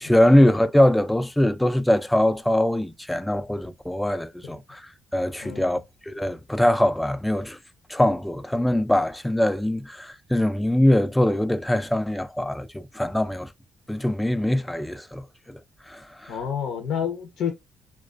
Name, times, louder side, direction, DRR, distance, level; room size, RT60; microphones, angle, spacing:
voice 1, 0.0-4.8 5.1-5.8 6.1-7.6 7.9-13.5 13.9-15.2 15.9-16.3, left 1 dB, 5° left, 0.3 m, -22 dB
voice 2, 5.4-5.8 16.3-17.5, left 8 dB, 80° left, 0.6 m, -30 dB
2.3 x 2.2 x 2.4 m
cardioid pair, 90°, 0 cm